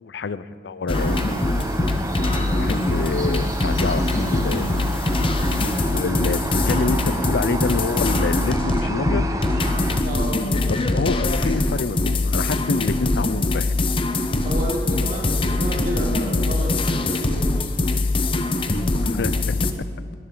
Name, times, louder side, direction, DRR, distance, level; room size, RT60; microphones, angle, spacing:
voice 1, 0.0-1.4 2.5-5.0 5.9-9.2 10.7-13.7 19.0-19.7, left 4 dB, 70° left, 15 dB, 0.5 m, -27 dB
sound 1, 0.9-19.7, left 2 dB, 30° left, 0.7 m, -23 dB
sound 2, 0.9-10.0, right 1 dB, 20° right, 0.8 m, -29 dB
voice 2, 2.6-2.9 10.0-10.5 14.4-18.0, right 1 dB, 50° right, -3 dB, 3.4 m, -31 dB
21.5 x 13.0 x 3.9 m, 2.4 s
head